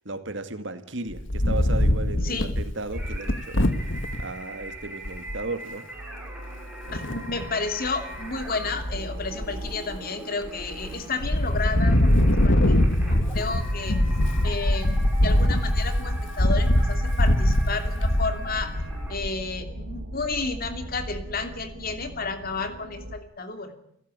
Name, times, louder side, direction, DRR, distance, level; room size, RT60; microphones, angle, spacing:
voice 1, 0.0-3.7 4.2-5.9, right 2 dB, 60° right, 9 dB, 2.2 m, -35 dB
Wind, 1.1-4.2 4.8-4.9 5.0-5.4 6.9-7.5 8.0-8.5 8.8-10.0 10.4-10.9 11.2-19.4, left 1 dB, 60° left, 1.7 m, -23 dB
voice 2, 2.2-2.5 6.9-14.0 14.4-18.7 19.1-23.7, left 4 dB, 45° left, 8 dB, 2.8 m, -32 dB
sound 1, 2.9-19.2, right 1 dB, 5° right, 6.2 m, -42 dB
sound 2, 5.8-23.2, right 1 dB, 75° right, 1.7 m, -40 dB
29.5 x 15.5 x 9.8 m, 0.73 s
head